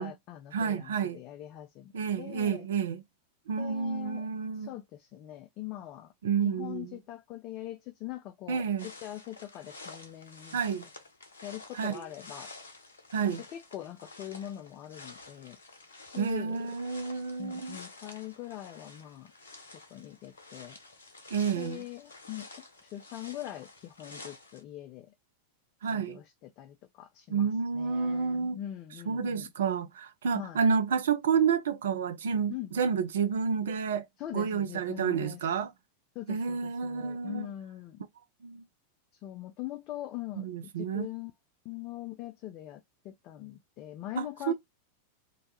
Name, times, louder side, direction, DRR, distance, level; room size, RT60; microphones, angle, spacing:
voice 1, 0.0-2.7 3.6-4.3 4.5-6.1 6.4-10.6 11.4-12.5 13.3-15.6 15.9-16.8 17.4-19.3 19.9-20.8 21.6-22.5 22.8-25.1 25.9-27.5 27.7-29.5 30.3-30.6 32.5-32.7 34.2-35.6 36.2-38.0 39.2-41.3 41.6-44.5, left 13 dB, 40° left, 0.3 m, -42 dB
voice 2, 0.5-1.2 1.9-3.0 3.5-4.7 6.2-6.9 8.5-8.9 10.5-10.8 11.8-12.0 13.1-13.4 16.2-17.8 21.3-21.8 25.8-26.2 27.3-28.6 29.1-34.0 34.3-35.7 36.3-37.5 38.4-38.6 40.4-41.1 44.2-44.5, right 6 dB, 60° right, 0.5 m, -30 dB
sound 1, 8.8-24.6, left 3 dB, 65° left, 0.8 m, -50 dB
2.8 x 2.1 x 2.8 m
figure-of-eight pair, 90°, 0 cm